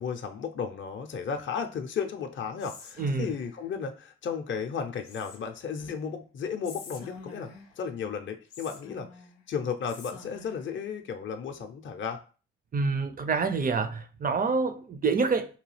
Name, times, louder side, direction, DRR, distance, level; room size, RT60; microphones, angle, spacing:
voice 1, 0.0-9.1 9.5-12.2, left 6 dB, 40° left, 0.5 m, -34 dB
Whispering, 2.6-3.7 5.0-5.7 6.6-7.8 8.5-9.4 9.8-10.7, left 4 dB, 80° left, 0.6 m, -47 dB
voice 2, 12.7-15.6, right 4 dB, 30° right, 0.5 m, -27 dB
2.9 x 2.3 x 3.2 m
hypercardioid pair, 45°, 31 cm